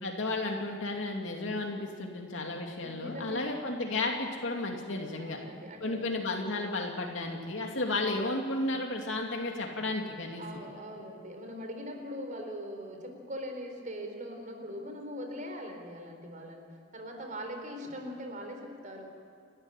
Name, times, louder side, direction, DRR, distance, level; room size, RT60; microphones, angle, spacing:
voice 1, 0.0-5.4 5.8-10.4, left 2 dB, 70° left, 1 dB, 2.6 m, -33 dB
voice 2, 2.8-3.6 5.2-6.1 10.4-19.1, equal, 40° right, 4 dB, 4.1 m, -41 dB
29.0 x 13.0 x 10.0 m, 2.5 s
head